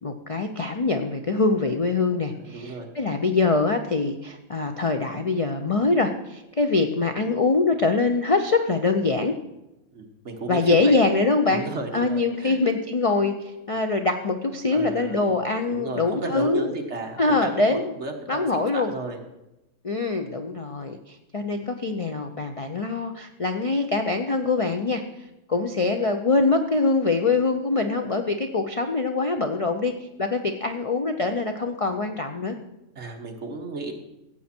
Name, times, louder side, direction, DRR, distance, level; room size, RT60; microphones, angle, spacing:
voice 1, 0.0-9.3 10.5-11.6 11.9-16.7 17.2-17.9 18.3-18.9 19.8-25.0 25.5-29.9 30.2-32.6, left 3 dB, 40° left, 6 dB, 0.4 m, -24 dB
voice 2, 2.4-2.9 9.9-11.0 11.5-12.6 14.7-15.3 15.7-18.4 18.7-19.2 32.9-33.9, right 3 dB, 55° right, 2 dB, 1.7 m, -33 dB
15.0 x 8.5 x 4.4 m, 0.93 s
omnidirectional pair, 1.5 m